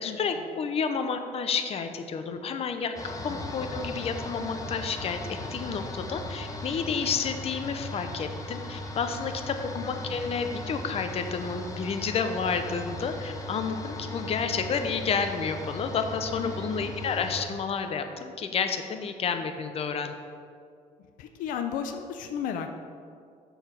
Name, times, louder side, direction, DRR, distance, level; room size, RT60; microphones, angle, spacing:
voice 1, 0.0-2.9 3.2-5.2 5.5-9.6 9.8-20.1, left 5 dB, 45° left, 7 dB, 0.7 m, -30 dB
sound 1, 2.9-17.4, left 1 dB, 25° left, 1.0 m, -38 dB
voice 2, 3.3-3.7 9.7-10.4 16.4-17.0 21.2-22.7, left 8 dB, 85° left, 6 dB, 0.5 m, -35 dB
6.6 x 5.6 x 5.9 m, 2.3 s
cardioid pair, 100°, 14 cm